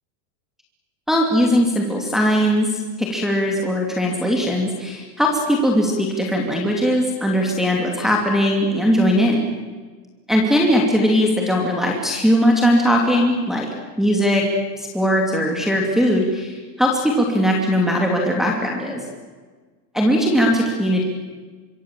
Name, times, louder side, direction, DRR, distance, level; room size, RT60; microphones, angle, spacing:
voice 1, 1.1-2.7 3.0-9.5 10.3-13.7 14.0-14.5 14.8-19.0 19.9-21.0, equal, ahead, -2 dB, 2.7 m, -19 dB
25.5 x 24.5 x 7.5 m, 1.4 s
supercardioid pair, 170°, 46 cm